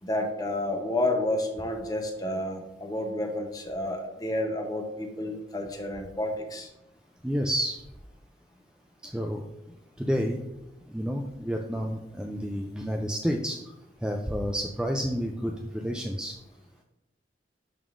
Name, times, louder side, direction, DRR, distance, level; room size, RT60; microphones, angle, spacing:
voice 1, 0.0-6.7, left 1 dB, 20° left, 4 dB, 0.7 m, -30 dB
voice 2, 7.2-7.8 9.0-9.4 10.0-10.4 10.9-13.6 14.0-16.3, equal, 5° right, 2 dB, 0.3 m, -30 dB
11.0 x 3.6 x 2.5 m, 0.95 s
head